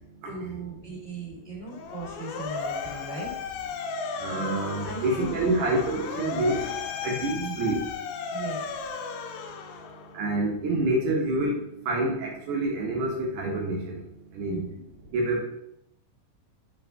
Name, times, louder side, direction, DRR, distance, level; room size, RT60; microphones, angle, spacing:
voice 1, 0.2-3.3 4.8-5.6 6.2-6.4 7.4-7.5 8.3-8.7 14.5-14.7, right 3 dB, 20° left, -6 dB, 1.9 m, -38 dB
Motor vehicle (road) / Siren, 1.7-10.3, left 5 dB, 80° left, 2.8 m, -35 dB
voice 2, 4.2-6.7 7.0-7.8 10.1-11.6 11.8-14.0 14.3-14.6 15.1-15.4, right 2 dB, 85° right, -1 dB, 1.8 m, -27 dB
7.9 x 3.7 x 4.7 m, 0.78 s
omnidirectional pair, 5.5 m